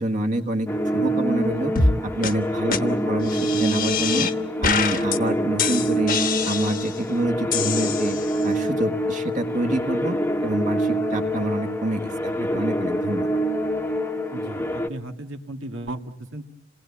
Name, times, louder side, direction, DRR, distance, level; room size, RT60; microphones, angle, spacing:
voice 1, 0.0-4.3 4.6-6.2 6.4-8.2 8.4-13.4, right 1 dB, 40° right, 7 dB, 1.5 m, -27 dB
sound 1, 0.7-14.9, equal, 10° left, 1.1 m, -26 dB
sound 2, 1.8-2.0 2.2-2.3 2.7-2.8 3.2-4.3 4.6-5.2 5.6-7.0 7.5-8.5, left 4 dB, 45° left, 1.2 m, -25 dB
voice 2, 14.3-16.4, right 1 dB, 85° right, 4 dB, 1.8 m, -35 dB
27.5 x 19.5 x 8.5 m, 0.95 s
head